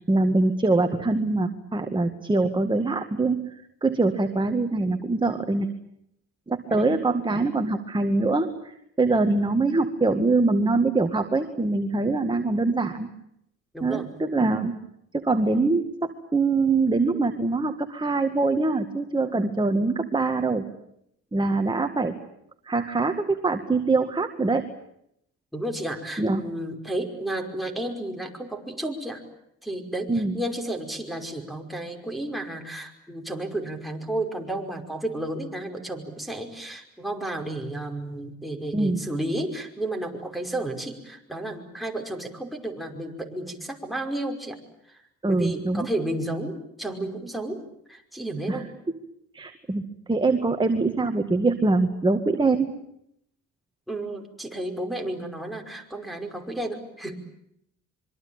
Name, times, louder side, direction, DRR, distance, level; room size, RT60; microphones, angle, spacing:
voice 1, 0.0-3.5 3.8-5.7 6.5-8.5 9.0-13.1 13.8-14.7 15.1-20.7 21.3-22.2 22.6-24.7 26.2-26.4 30.1-30.4 38.7-39.0 45.2-45.9 48.5-48.6 49.3-49.8 50.1-52.7, right 3 dB, 15° right, 6 dB, 1.9 m, -23 dB
voice 2, 13.7-14.1 25.5-29.2 29.6-44.6 44.9-45.0 45.3-47.6 47.9-48.7 53.9-57.2, right 1 dB, ahead, 1 dB, 5.4 m, -32 dB
26.0 x 24.0 x 8.8 m, 0.76 s
cardioid pair, 90°, 30 cm